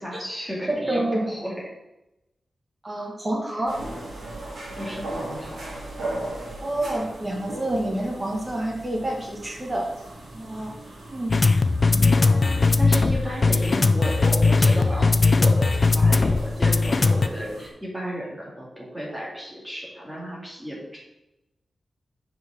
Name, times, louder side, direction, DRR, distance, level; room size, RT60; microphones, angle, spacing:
voice 1, 0.0-1.5 4.8-5.8 12.8-21.0, equal, ahead, -4 dB, 2.1 m, -33 dB
voice 2, 0.7-1.3 2.8-3.8 6.6-9.9 10.3-10.7 11.1-11.3, right 1 dB, 15° right, -1 dB, 1.3 m, -28 dB
sound 1, 3.7-17.7, right 1 dB, 65° right, 2.0 m, -38 dB
sound 2, 11.3-17.3, left 3 dB, 35° left, 0.4 m, -19 dB
5.1 x 4.7 x 6.1 m, 0.92 s
wide cardioid pair, 180°, 0 cm